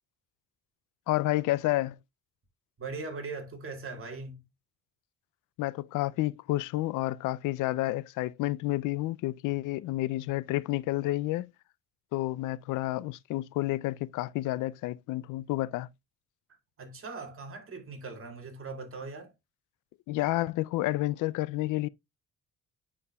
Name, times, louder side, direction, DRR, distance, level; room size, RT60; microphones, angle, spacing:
voice 1, 1.1-2.0 5.6-11.5 12.1-15.9 20.1-21.9, left 17 dB, 85° left, 0.5 m, -30 dB
voice 2, 2.8-4.5 16.8-19.3, right 3 dB, 45° right, 2.3 m, -40 dB
9.9 x 4.7 x 2.3 m
cardioid pair, 90°, 30 cm